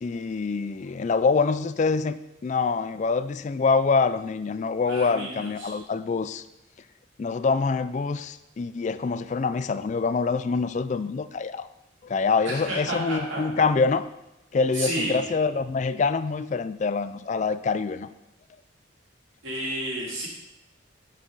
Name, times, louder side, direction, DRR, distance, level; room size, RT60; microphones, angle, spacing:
voice 1, 0.0-6.4 7.2-11.7 12.0-14.0 14.5-18.1, left 4 dB, 40° left, 13 dB, 0.3 m, -25 dB
voice 2, 4.8-5.8 12.4-13.4 14.7-15.3 19.4-20.3, right 1 dB, 80° right, -4 dB, 3.3 m, -31 dB
12.5 x 5.7 x 3.9 m, 0.92 s
head